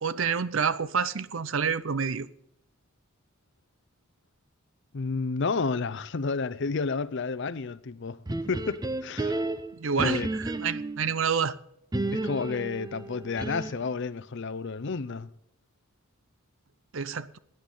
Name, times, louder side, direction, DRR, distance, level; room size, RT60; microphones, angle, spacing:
voice 1, 0.0-2.3 9.7-11.6 16.9-17.4, right 6 dB, 65° right, 0.7 m, -28 dB
voice 2, 4.9-9.4 10.0-10.3 12.1-15.3, left 4 dB, 55° left, 0.6 m, -31 dB
sound 1, 8.3-11.0 11.9-13.9, right 2 dB, 20° right, 0.7 m, -32 dB
18.0 x 10.0 x 3.9 m
head